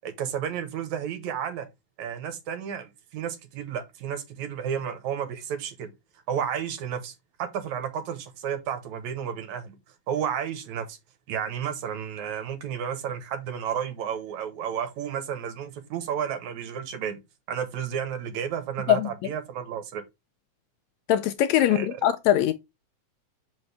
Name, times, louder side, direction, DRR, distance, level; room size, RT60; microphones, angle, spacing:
voice 1, 0.0-1.7 2.0-5.9 6.3-9.8 10.1-11.0 11.3-17.2 17.5-20.0 21.6-22.0, right 8 dB, 70° right, 2.4 m, -32 dB
voice 2, 21.1-22.5, left 11 dB, 80° left, 1.7 m, -21 dB
6.3 x 5.2 x 3.3 m
omnidirectional pair, 3.5 m